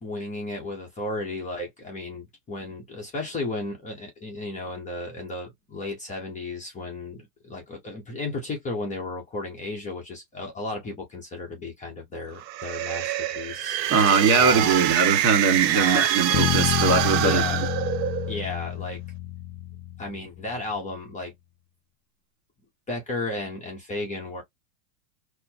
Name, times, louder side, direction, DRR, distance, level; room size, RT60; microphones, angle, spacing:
voice 1, 0.0-13.8 14.4-14.9 15.7-16.1 17.2-17.6 18.3-19.0 20.0-21.3 22.9-24.4, left 2 dB, 15° left, 0.8 m, -34 dB
sound 1, 12.4-18.4, right 11 dB, 75° right, 0.7 m, -25 dB
voice 2, 13.9-17.7, right 5 dB, 50° right, 1.7 m, -21 dB
sound 2, 16.3-20.4, left 15 dB, 70° left, 0.7 m, -29 dB
4.3 x 2.1 x 2.7 m
supercardioid pair, 145°, 50 cm